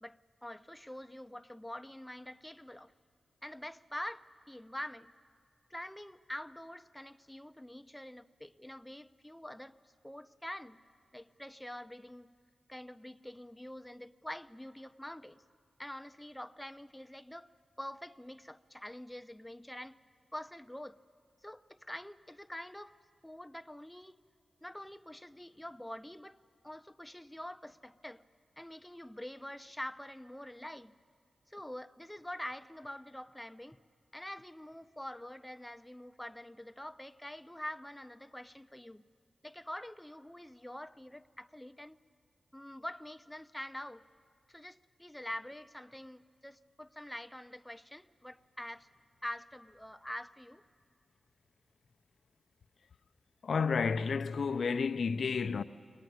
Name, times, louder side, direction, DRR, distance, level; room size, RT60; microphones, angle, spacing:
voice 1, 0.0-2.9 3.4-5.1 5.7-9.7 10.0-10.8 11.1-12.3 12.7-15.4 15.8-17.5 17.8-20.0 20.3-21.0 21.4-23.0 23.2-24.2 24.6-26.4 26.6-28.2 28.6-30.9 31.5-33.8 34.1-39.0 39.4-42.0 42.5-44.0 44.5-48.9 49.2-50.6, left 1 dB, 10° left, 0.6 m, -45 dB
voice 2, 53.4-55.6, left 5 dB, 70° left, 0.6 m, -31 dB
23.5 x 18.5 x 9.3 m
cardioid pair, 50°, 0 cm